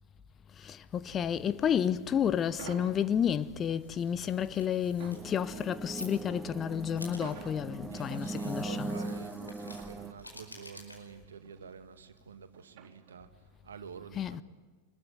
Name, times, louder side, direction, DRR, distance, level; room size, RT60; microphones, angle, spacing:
voice 1, 0.6-9.0 14.1-14.4, left 8 dB, 25° left, 0.8 m, -31 dB
sound 1, 2.6-13.5, right 9 dB, 45° right, 4.2 m, -53 dB
sound 2, 3.5-12.7, left 1 dB, 85° left, 4.8 m, -52 dB
sound 3, 5.1-10.1, right 2 dB, 10° right, 0.9 m, -40 dB
voice 2, 7.7-14.4, right 6 dB, 65° right, 2.0 m, -48 dB
25.5 x 21.0 x 9.5 m
figure-of-eight pair, 90°, 0 cm